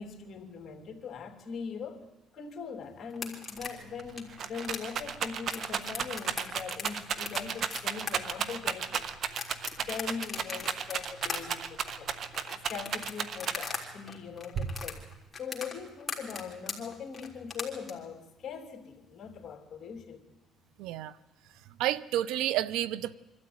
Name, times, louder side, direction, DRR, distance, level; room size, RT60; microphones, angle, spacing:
voice 1, 0.0-2.0 2.3-9.1 9.8-12.2 12.5-15.0 15.4-20.2, left 6 dB, 45° left, 3.2 m, -41 dB
sound 1, 3.1-13.8 14.1-17.9, left 4 dB, 15° left, 3.5 m, -39 dB
Rattle, 3.6-3.7 4.0-13.9 14.6-15.2, right 7 dB, 55° right, 1.2 m, -34 dB
voice 2, 20.8-21.2 21.5-23.2, right 13 dB, 85° right, 0.7 m, -31 dB
24.5 x 13.0 x 9.5 m
cardioid pair, 105°, 0 cm